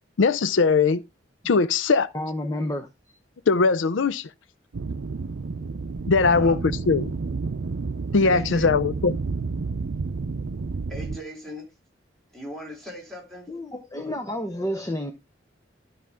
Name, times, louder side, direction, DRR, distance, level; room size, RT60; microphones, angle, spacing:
voice 1, 0.2-1.0 1.5-2.1 3.5-4.3 6.1-6.6 6.9-7.1 8.1-9.1, left 4 dB, 85° left, 0.5 m, -20 dB
voice 2, 2.1-3.1 13.5-15.1, left 1 dB, 15° left, 0.9 m, -30 dB
sound 1, 4.7-11.2, right 4 dB, 85° right, 0.6 m, -30 dB
voice 3, 6.2-6.6 8.2-8.9 10.9-11.7 12.3-13.5, left 1 dB, ahead, 3.4 m, -39 dB
12.5 x 5.8 x 3.6 m
head